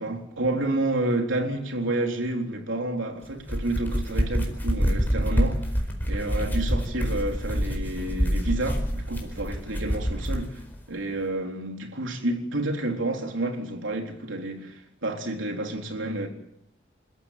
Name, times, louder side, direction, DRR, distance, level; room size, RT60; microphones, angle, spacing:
voice 1, 0.0-5.7 6.1-10.6 10.9-16.3, right 2 dB, 90° right, 3.8 m, -29 dB
sound 1, 3.3-10.5, equal, 10° left, 4.6 m, -26 dB
29.0 x 14.5 x 9.3 m
head